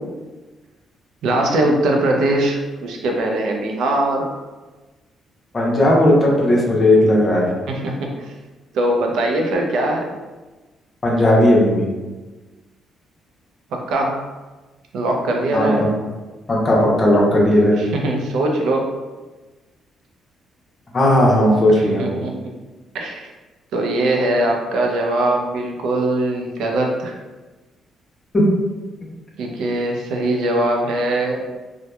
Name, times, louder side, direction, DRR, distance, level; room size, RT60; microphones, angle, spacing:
voice 1, 1.2-4.4 7.7-8.3 8.7-10.1 13.7-14.3 14.9-15.9 17.8-19.0 21.8-22.5 22.9-23.3 23.7-27.1 29.4-31.4, right 1 dB, 80° right, 1 dB, 0.4 m, -21 dB
voice 2, 5.5-7.5 11.0-11.9 15.5-15.7 16.5-17.8 20.9-22.0, left 1 dB, 35° left, -3 dB, 0.7 m, -15 dB
2.8 x 2.1 x 2.2 m, 1.2 s
cardioid pair, 90°, 0 cm